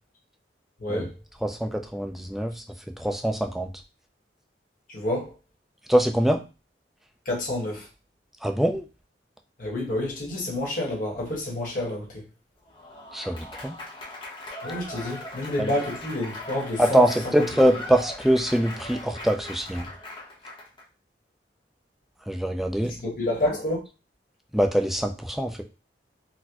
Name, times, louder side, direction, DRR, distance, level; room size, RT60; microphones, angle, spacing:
voice 1, 0.8-1.1 4.9-5.3 7.2-7.9 9.6-12.2 14.6-17.1 22.8-23.8, left 1 dB, 50° left, -2 dB, 1.3 m, -29 dB
voice 2, 1.4-2.6 3.0-3.7 5.9-6.4 8.4-8.8 13.1-13.7 15.6-15.7 16.8-19.9 22.3-22.9 24.5-25.6, right 1 dB, ahead, 4 dB, 0.3 m, -23 dB
Applause / Crowd, 12.7-20.8, left 1 dB, 30° left, 0.8 m, -39 dB
4.1 x 2.1 x 2.8 m, 0.30 s
head